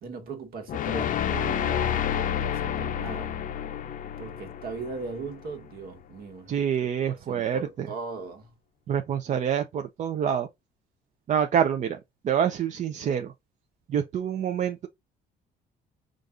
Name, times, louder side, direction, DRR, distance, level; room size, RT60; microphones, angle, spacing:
voice 1, 0.0-3.3 4.2-8.5, right 4 dB, 60° right, 1.4 m, -39 dB
sound 1, 0.7-5.8, left 9 dB, 50° left, 0.6 m, -29 dB
voice 2, 6.5-7.9 8.9-10.5 11.3-12.0 12.2-13.3 13.9-14.9, right 8 dB, 45° right, 0.5 m, -26 dB
5.1 x 2.4 x 3.8 m
cardioid pair, 110°, 17 cm